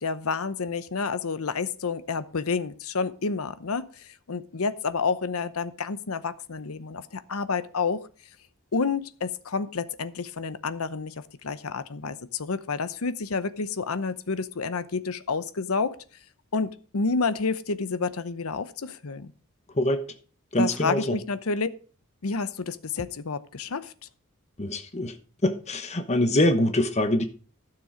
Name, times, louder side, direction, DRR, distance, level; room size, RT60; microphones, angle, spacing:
voice 1, 0.0-8.1 8.7-16.0 16.5-19.3 20.6-21.7 22.2-23.9, left 4 dB, 80° left, 0.8 m, -29 dB
voice 2, 20.5-21.2 24.6-25.1 25.4-27.2, left 1 dB, 30° left, 1.1 m, -24 dB
12.5 x 6.9 x 5.0 m
head